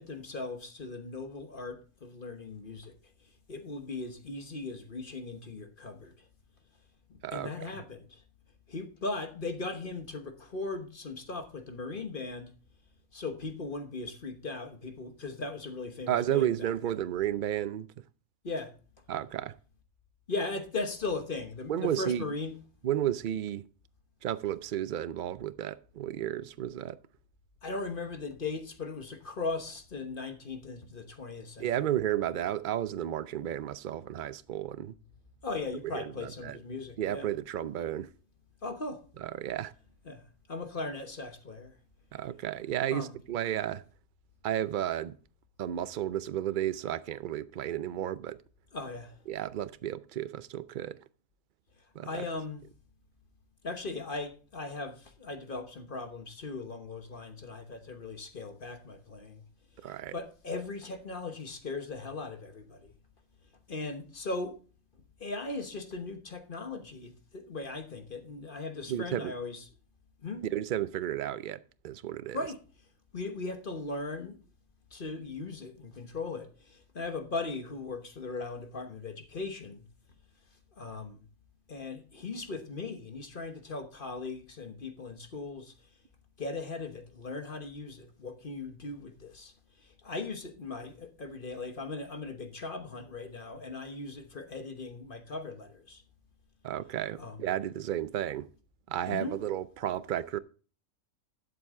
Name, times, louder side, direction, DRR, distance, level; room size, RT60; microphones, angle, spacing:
voice 1, 0.0-2.9 3.5-6.1 7.1-8.2 8.7-12.5 13.1-16.5 18.4-18.7 20.3-22.6 27.6-31.9 35.4-37.3 38.6-39.0 40.1-40.2 40.5-41.7 42.9-43.1 48.7-49.2 52.0-52.6 53.6-59.4 60.1-62.9 63.7-64.6 65.2-69.6 70.2-70.5 72.3-72.6 73.1-74.4 74.9-79.8 80.8-81.2 81.7-85.7 86.4-89.5 89.8-96.0 97.2-97.4 99.1-99.4, left 3 dB, 40° left, 1.3 m, -38 dB
voice 2, 16.1-17.9 19.1-19.5 21.7-22.3 22.8-23.7 24.2-27.0 31.6-34.9 35.9-36.6 37.0-38.1 39.2-39.7 42.1-43.8 44.4-45.2 45.6-48.4 49.3-51.0 51.9-52.2 59.8-60.1 68.9-69.3 70.4-72.4 96.6-98.5 98.9-100.4, right 11 dB, 60° right, 0.5 m, -32 dB
12.0 x 7.9 x 3.6 m
omnidirectional pair, 1.4 m